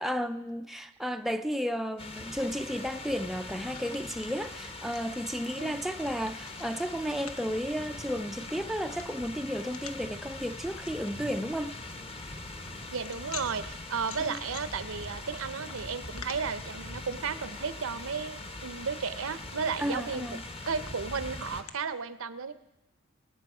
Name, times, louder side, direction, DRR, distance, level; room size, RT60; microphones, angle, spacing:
voice 1, 0.0-11.8 14.3-14.4 19.8-20.4, equal, ahead, 0.4 m, -33 dB
sound 1, 2.0-21.6, left 2 dB, 25° left, 1.0 m, -42 dB
sound 2, 2.7-21.7, left 7 dB, 75° left, 0.9 m, -52 dB
voice 2, 12.9-20.3 20.7-22.5, right 5 dB, 65° right, 0.7 m, -34 dB
23.5 x 9.4 x 4.9 m
head